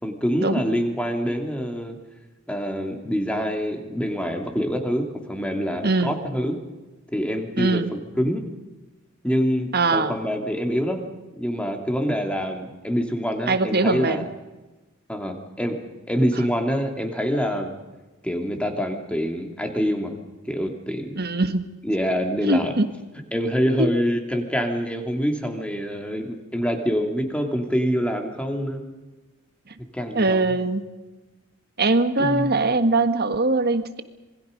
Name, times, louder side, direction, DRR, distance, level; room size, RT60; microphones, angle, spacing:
voice 1, 0.0-2.0 2.5-6.6 7.1-7.8 8.2-8.4 9.2-11.0 11.4-14.3 15.1-15.8 16.1-17.7 18.2-20.1 20.4-21.2 21.8-22.7 23.3-28.8 29.9-30.4 32.2-32.6, equal, 5° left, 3 dB, 2.9 m, -25 dB
voice 2, 5.8-6.1 7.6-7.9 9.7-10.1 13.5-14.2 21.2-21.6 22.4-22.9 23.8-23.9 29.7-29.8 30.1-30.9 31.8-34.0, right 2 dB, 50° right, 9 dB, 1.6 m, -21 dB
27.0 x 22.0 x 5.3 m, 1.1 s
head